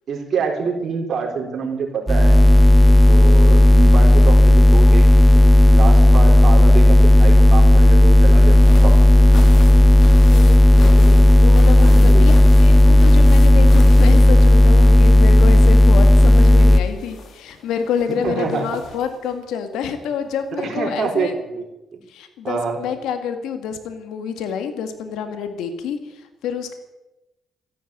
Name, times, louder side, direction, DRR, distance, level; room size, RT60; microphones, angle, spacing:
voice 1, 0.1-2.3 3.1-5.2 5.7-9.3 11.8-12.3 18.1-18.7 20.6-21.6 22.4-22.8, right 5 dB, 60° right, 1 dB, 4.6 m, -26 dB
sound 1, 2.1-16.8, left 1 dB, 10° right, 1.1 m, -11 dB
sound 2, 8.3-15.1 15.3-19.3 20.4-20.5 20.8-20.9, left 4 dB, 65° left, 3.0 m, -39 dB
voice 2, 10.3-21.3 22.1-26.7, left 7 dB, 85° left, 8 dB, 1.9 m, -28 dB
14.0 x 11.5 x 8.8 m, 1.0 s
cardioid pair, 90°, 0 cm